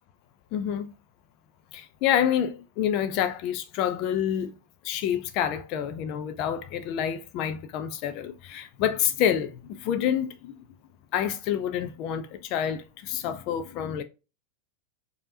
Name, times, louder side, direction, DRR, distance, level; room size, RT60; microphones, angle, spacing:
voice 1, 0.5-0.9 1.7-4.5 4.8-10.6 11.1-14.0, left 9 dB, 40° left, 0.5 m, -28 dB
5.1 x 2.9 x 2.6 m
figure-of-eight pair, 90°, 0 cm